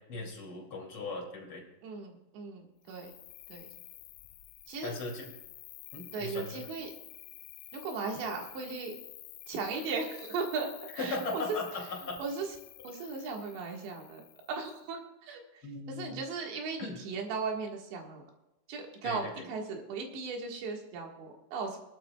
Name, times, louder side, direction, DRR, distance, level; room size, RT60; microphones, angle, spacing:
voice 1, 0.0-1.6 4.8-5.2 5.9-6.6 11.0-12.2 15.6-16.2 16.8-17.0 19.0-19.5, left 3 dB, 35° left, -1 dB, 2.5 m, -38 dB
voice 2, 1.8-3.1 3.5-3.7 4.7-5.0 6.1-6.9 7.7-8.9 9.5-11.6 12.2-12.5 12.8-14.2 14.5-18.2 18.7-21.8, right 4 dB, 70° right, 1 dB, 3.6 m, -37 dB
Cricket, 2.8-14.8, left 17 dB, 85° left, 3.1 m, -50 dB
20.5 x 12.0 x 2.3 m, 0.97 s
omnidirectional pair, 5.6 m